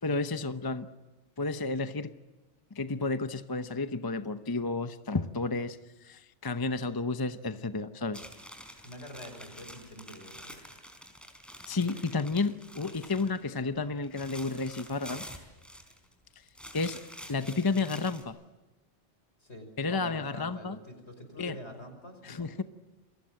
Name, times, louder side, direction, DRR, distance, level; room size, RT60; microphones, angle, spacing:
voice 1, 0.0-0.9 1.4-2.1 2.7-8.2 11.7-15.2 16.7-17.0 17.3-18.4 19.8-20.8 21.4-21.6 22.2-22.6, left 3 dB, 20° left, 10 dB, 0.8 m, -31 dB
sound 1, 8.1-13.4 13.7-16.1 16.5-18.2, equal, ahead, 4.5 m, -48 dB
voice 2, 8.8-10.6 19.4-22.5, left 1 dB, 70° left, 7 dB, 5.7 m, -46 dB
28.5 x 23.5 x 7.7 m, 1.2 s
omnidirectional pair, 1.2 m